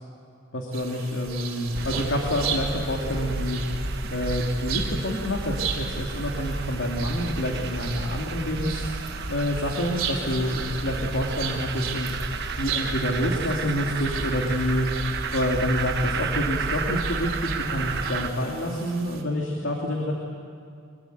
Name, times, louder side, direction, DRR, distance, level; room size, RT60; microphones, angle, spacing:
voice 1, 0.5-8.9 9.3-12.2 12.5-14.9 15.3-20.1, left 1 dB, 65° left, 0 dB, 2.7 m, -27 dB
sound 1, 0.7-19.2, right 7 dB, 75° right, 3.4 m, -37 dB
sound 2, 1.7-18.3, right 3 dB, 55° right, 1.3 m, -31 dB
24.0 x 21.0 x 9.3 m, 2.4 s
head